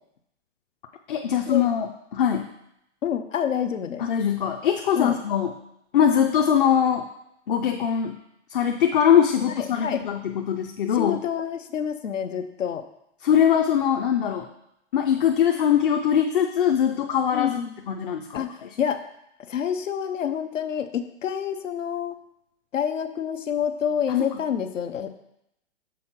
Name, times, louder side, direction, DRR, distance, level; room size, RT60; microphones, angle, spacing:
voice 1, 1.1-2.5 4.0-5.5 5.9-7.1 7.5-8.1 8.5-11.2 13.2-14.5 14.9-17.6 17.9-18.8, left 8 dB, 45° left, 4 dB, 0.5 m, -22 dB
voice 2, 3.0-4.1 5.0-5.2 9.6-10.1 11.0-12.8 17.3-17.7 18.3-19.0 19.5-22.2 22.7-25.2, left 8 dB, 90° left, 9 dB, 0.7 m, -28 dB
6.3 x 3.9 x 5.8 m, 0.80 s
hypercardioid pair, 140°, 37 cm